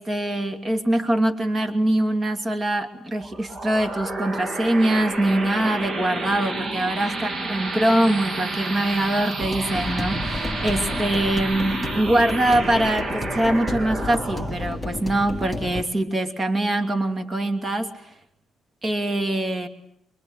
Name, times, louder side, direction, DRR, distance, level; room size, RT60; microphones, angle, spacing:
voice 1, 0.0-18.1 18.8-19.7, right 1 dB, 25° right, 7 dB, 2.7 m, -23 dB
sound 1, 3.2-16.3, right 2 dB, 50° right, 2.2 m, -30 dB
sound 2, 9.4-15.8, left 1 dB, ahead, 2.3 m, -31 dB
24.5 x 22.5 x 8.8 m, 0.76 s
cardioid pair, 90°, 0 cm